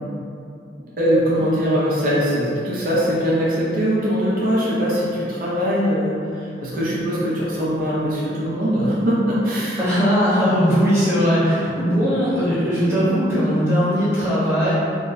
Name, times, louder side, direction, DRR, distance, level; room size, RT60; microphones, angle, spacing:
voice 1, 1.0-9.8, equal, 50° right, -7 dB, 0.5 m, -21 dB
voice 2, 9.8-14.7, equal, 15° right, -12 dB, 1.0 m, -19 dB
2.6 x 2.2 x 3.9 m, 2.5 s
head